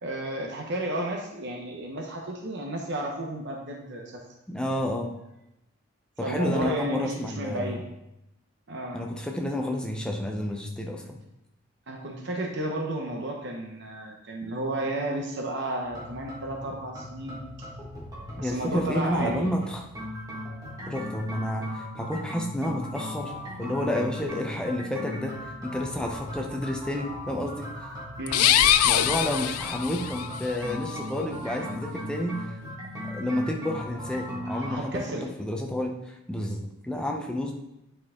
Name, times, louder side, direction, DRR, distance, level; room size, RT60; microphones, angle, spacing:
voice 1, 0.0-4.2 6.2-7.8 8.7-9.0 11.9-17.4 18.4-19.5 28.2-28.5 34.4-35.2, right 1 dB, 50° right, 1 dB, 0.8 m, -32 dB
voice 2, 4.5-5.1 6.2-7.7 8.9-11.2 18.4-19.8 20.9-23.3 23.6-27.7 28.8-32.6 33.0-35.0 35.4-37.6, left 1 dB, 5° left, 1 dB, 0.6 m, -30 dB
sound 1, 15.8-34.7, left 1 dB, 15° right, 1.6 m, -38 dB
sound 2, 28.3-30.3, left 11 dB, 90° left, 0.4 m, -22 dB
9.2 x 4.4 x 3.6 m, 0.89 s
head